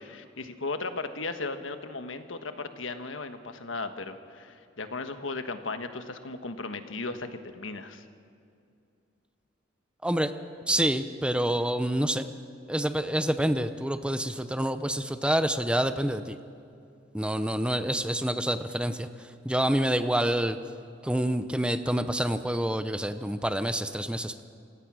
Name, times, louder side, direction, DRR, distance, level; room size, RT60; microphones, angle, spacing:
voice 1, 0.0-8.0, left 3 dB, 85° left, 8 dB, 1.4 m, -36 dB
voice 2, 10.7-12.3 12.7-16.4 17.1-19.1 19.4-20.6 21.0-24.4, right 1 dB, 5° right, 10 dB, 0.7 m, -27 dB
28.0 x 17.0 x 6.3 m, 2.5 s
head